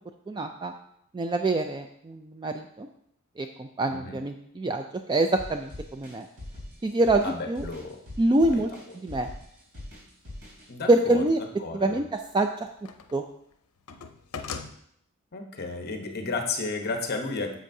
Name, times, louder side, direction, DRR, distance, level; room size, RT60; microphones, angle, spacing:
voice 1, 0.3-0.7 1.1-2.9 3.4-6.3 6.8-7.7 8.2-8.7 9.0-9.3 10.9-11.4 11.7-12.5 13.1-13.2, right 2 dB, 20° right, 6 dB, 0.3 m, -25 dB
voice 2, 3.9-4.2 7.2-8.0 8.5-8.7 10.7-11.2 11.6-12.0 15.3-17.5, left 3 dB, 45° left, 3 dB, 1.0 m, -33 dB
sound 1, 5.4-10.7, left 1 dB, 80° right, 3.6 m, -42 dB
sound 2, 10.1-10.2 11.9-13.2 13.5-14.7, left 5 dB, 80° left, 0.6 m, -39 dB
9.9 x 7.6 x 2.7 m, 0.72 s
head